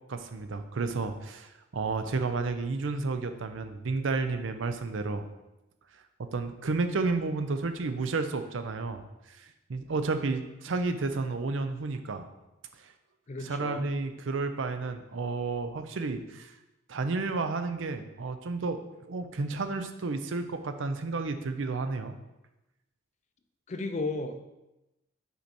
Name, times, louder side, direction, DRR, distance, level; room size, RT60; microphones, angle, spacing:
voice 1, 0.1-5.3 6.2-12.3 13.4-16.5 16.9-22.2, right 3 dB, 70° right, 8 dB, 0.5 m, -31 dB
voice 2, 13.3-13.9 23.7-24.4, left 3 dB, 35° left, 8 dB, 0.4 m, -34 dB
5.6 x 4.6 x 4.3 m, 0.97 s
head